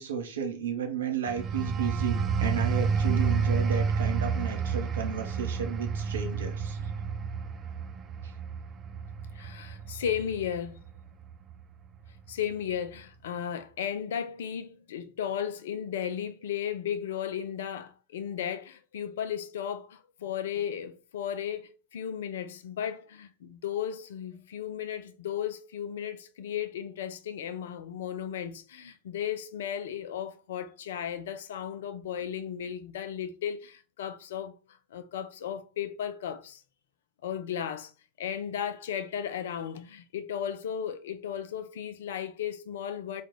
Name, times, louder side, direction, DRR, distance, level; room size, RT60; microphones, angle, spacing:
voice 1, 0.0-6.9 8.2-8.3, right 7 dB, 65° right, 0.7 m, -33 dB
sound 1, 1.3-11.6 12.1-12.3, right 5 dB, 25° right, 0.3 m, -30 dB
voice 2, 9.3-10.8 12.3-34.5 34.9-36.6 37.2-37.9 38.2-43.2, left 9 dB, 60° left, 0.4 m, -35 dB
3.7 x 2.3 x 3.2 m
figure-of-eight pair, 90°, 0 cm